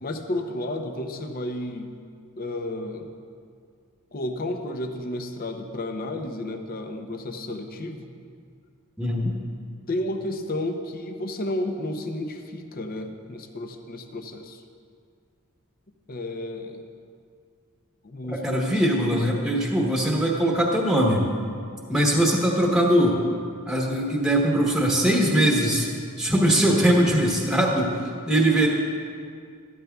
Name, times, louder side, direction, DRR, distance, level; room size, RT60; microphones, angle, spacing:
voice 1, 0.0-1.9 2.4-3.1 4.1-8.1 9.9-14.6 16.1-16.8 18.0-19.7, left 1 dB, 40° left, 5 dB, 0.6 m, -32 dB
voice 2, 9.0-9.3 18.2-21.3 21.9-23.2 23.7-25.9 26.2-27.9 28.3-28.7, right 1 dB, 5° right, -3 dB, 1.1 m, -21 dB
13.5 x 13.0 x 2.3 m, 2.2 s
head